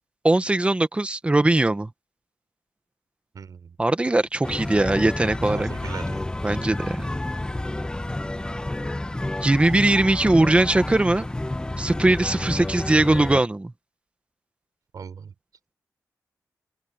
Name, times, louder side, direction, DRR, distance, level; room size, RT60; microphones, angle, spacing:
voice 1, 0.2-1.9 3.8-5.7 6.4-7.1 9.4-11.3 11.8-13.7, right 2 dB, 20° right, 1.5 m, -20 dB
voice 2, 3.3-3.8 5.5-6.2 14.9-15.3, right 6 dB, 75° right, 4.8 m, -38 dB
sound 1, 4.4-13.4, left 1 dB, 15° left, 1.2 m, -30 dB
open air
wide cardioid pair, 100°, 6 cm